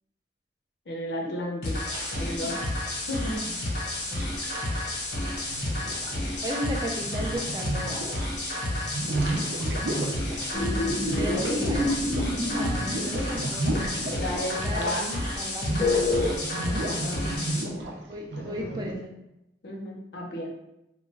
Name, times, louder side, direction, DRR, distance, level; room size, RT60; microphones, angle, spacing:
voice 1, 0.9-1.7 2.1-2.5 3.1-3.5 11.0-11.8 12.5-12.8 14.1-15.2 16.6-17.8 18.4-18.9 19.6-20.7, left 1 dB, 70° left, -1 dB, 0.6 m, -34 dB
sound 1, 1.6-17.6, left 1 dB, 90° left, 1.0 m, -31 dB
sound 2, 1.9-3.0 3.7-5.0 5.4-8.3 8.6-15.3 15.5-18.9, right 2 dB, 80° right, 0.5 m, -34 dB
voice 2, 3.4-4.3 6.4-8.0 10.3-10.4 11.0-11.9 12.5-13.9 14.6-14.9 15.3-16.0 18.1-19.1, equal, 25° right, 0 dB, 0.3 m, -35 dB
sound 3, 10.5-13.7 15.8-16.3, left 2 dB, 15° left, 0.6 m, -28 dB
2.3 x 2.2 x 3.2 m, 0.87 s
head